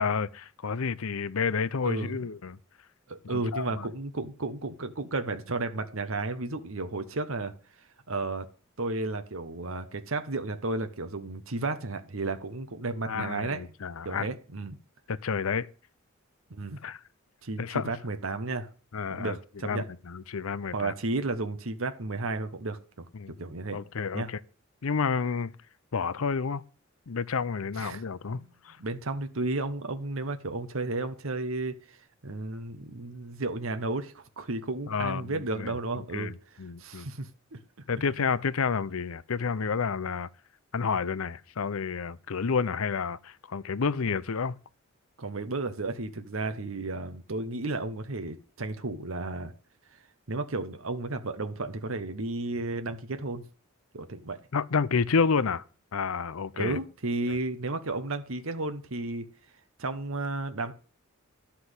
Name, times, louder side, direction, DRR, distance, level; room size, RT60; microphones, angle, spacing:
voice 1, 0.0-2.6 3.2-3.9 13.1-14.3 15.1-15.7 16.8-17.0 17.6-17.9 18.9-19.4 19.6-20.9 23.1-23.3 23.7-24.4 24.8-25.6 25.9-26.6 27.1-28.8 34.9-35.7 36.1-36.3 36.6-37.1 37.9-40.3 40.7-44.6 54.5-55.6 55.9-56.8 57.3-57.4, left 5 dB, 80° left, 0.6 m, -30 dB
voice 2, 1.8-2.3 3.1-7.5 7.8-8.5 8.8-13.6 14.0-14.8 16.5-16.8 17.4-18.7 19.1-19.8 20.7-23.1 23.4-23.8 24.1-24.3 27.7-28.0 28.3-28.5 28.8-32.0 32.2-37.6 45.2-49.5 49.9-50.0 50.3-53.4 53.9-54.4 56.5-59.3 59.8-60.7, right 2 dB, 70° right, 1.0 m, -33 dB
11.5 x 5.8 x 8.1 m
head